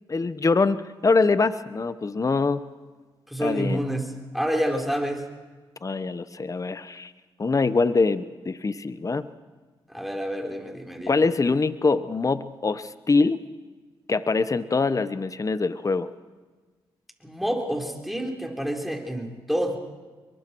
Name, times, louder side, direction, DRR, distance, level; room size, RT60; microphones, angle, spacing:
voice 1, 0.1-2.6 3.4-3.8 5.8-7.1 7.4-9.3 11.1-13.4 14.1-16.1, left 4 dB, 35° left, 13 dB, 1.0 m, -24 dB
voice 2, 3.3-5.2 9.9-11.2 17.2-19.8, equal, ahead, 1 dB, 4.4 m, -28 dB
28.0 x 23.0 x 4.7 m, 1.4 s
supercardioid pair, 50°, 10 cm